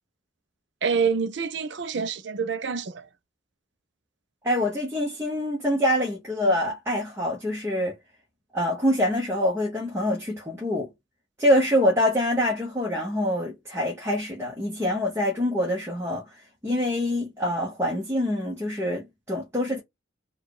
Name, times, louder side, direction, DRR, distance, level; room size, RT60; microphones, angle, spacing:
voice 1, 0.8-3.0, right 5 dB, 60° right, 0.5 m, -27 dB
voice 2, 4.4-7.9 8.5-10.9 11.4-16.3 16.6-19.8, left 1 dB, 15° right, 1.0 m, -25 dB
4.5 x 2.4 x 4.8 m
head